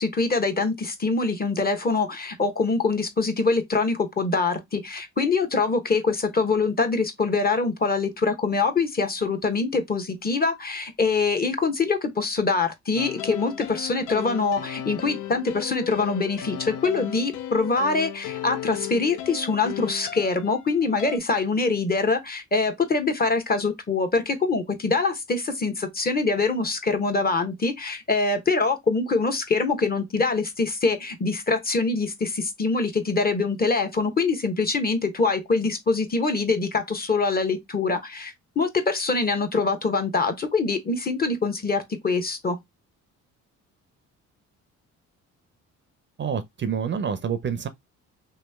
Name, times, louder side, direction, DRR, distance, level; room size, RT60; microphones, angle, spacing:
voice 1, 0.0-42.6, left 4 dB, 30° left, 1.0 m, -24 dB
sound 1, 13.0-21.2, left 11 dB, 85° left, 0.5 m, -35 dB
voice 2, 46.2-47.7, right 7 dB, 40° right, 0.5 m, -27 dB
3.1 x 2.7 x 3.3 m
cardioid pair, 90°, 30 cm